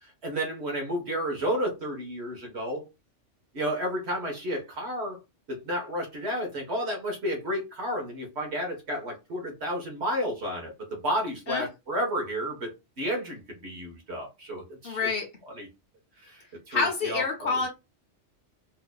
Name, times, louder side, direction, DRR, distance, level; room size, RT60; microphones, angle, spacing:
voice 1, 0.0-2.8 3.5-5.2 5.5-15.1 15.5-15.7 16.2-17.6, equal, 60° right, 1.5 m, -32 dB
voice 2, 14.8-15.3 16.7-17.7, left 4 dB, 55° left, 1.1 m, -27 dB
4.4 x 2.8 x 2.3 m
omnidirectional pair, 1.2 m